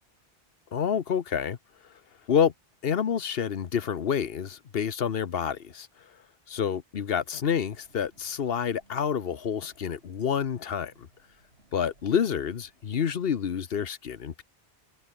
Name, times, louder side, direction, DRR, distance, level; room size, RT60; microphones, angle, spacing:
voice 1, 0.7-1.6 2.3-2.5 2.8-5.9 6.5-11.1 11.7-14.4, left 7 dB, 65° left, 1.1 m, -28 dB
sound 1, 7.4-13.3, right 1 dB, 80° right, 7.1 m, -63 dB
omnidirectional pair, 1.1 m